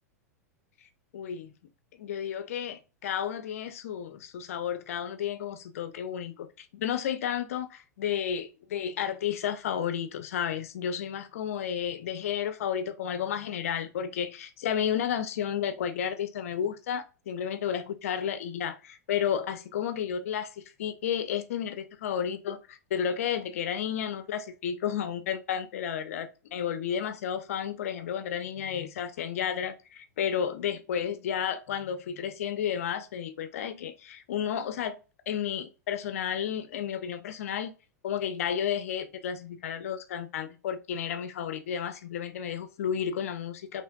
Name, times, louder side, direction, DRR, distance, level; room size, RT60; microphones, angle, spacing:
voice 1, 1.1-1.5 1.9-35.0 35.3-37.7 38.0-43.8, left 8 dB, 60° left, 0.7 m, -32 dB
5.6 x 3.3 x 2.3 m
figure-of-eight pair, 95°, 9 cm